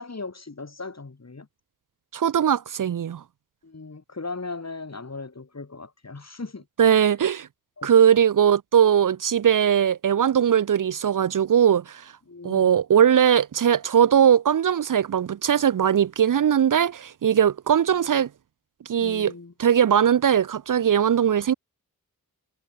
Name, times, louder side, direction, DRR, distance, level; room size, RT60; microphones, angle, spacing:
voice 1, 0.0-1.5 3.6-6.6 7.8-8.1 12.3-12.7 19.0-19.5, left 3 dB, 45° left, 4.5 m, -37 dB
voice 2, 2.1-3.2 6.8-7.5 7.8-12.1 12.4-18.3 18.9-19.3 19.6-21.5, right 8 dB, 60° right, 0.6 m, -20 dB
cardioid pair, 55°, 37 cm